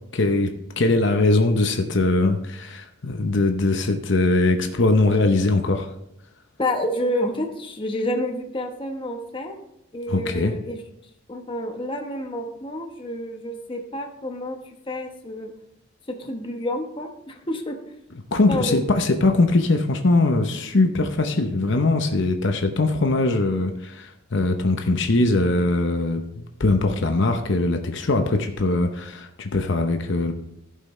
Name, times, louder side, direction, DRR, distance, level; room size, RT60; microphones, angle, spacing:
voice 1, 0.1-5.9 10.1-10.5 18.3-30.3, left 2 dB, 65° left, 5 dB, 0.8 m, -21 dB
voice 2, 6.6-9.6 9.9-10.8 11.3-14.6 14.9-15.5 16.1-17.8 18.5-18.8, left 1 dB, 25° left, 3 dB, 1.0 m, -29 dB
15.5 x 5.6 x 3.2 m, 0.80 s
head